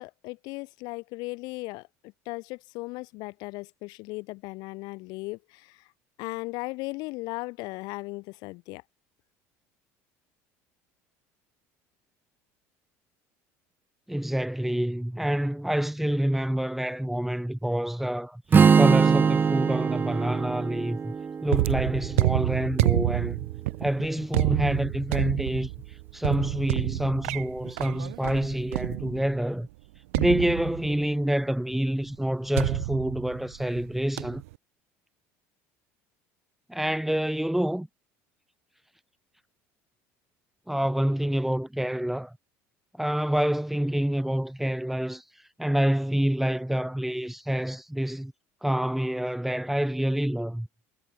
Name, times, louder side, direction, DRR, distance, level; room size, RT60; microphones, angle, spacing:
voice 1, 0.0-5.9 6.2-8.8, left 24 dB, 70° left, 5.7 m, -37 dB
voice 2, 14.1-18.4 18.7-21.1 21.4-23.4 23.8-25.7 26.1-29.7 30.1-34.4 36.7-37.9 40.7-42.3 43.0-45.2 45.6-48.3 48.6-50.7, right 1 dB, 5° right, 1.6 m, -27 dB
Strum, 18.5-22.7, right 6 dB, 25° right, 0.8 m, -22 dB
sound 1, 21.5-29.4 30.1-31.1 32.6-33.8 34.2-34.5, right 21 dB, 90° right, 0.8 m, -28 dB
supercardioid pair, 95°, 7 cm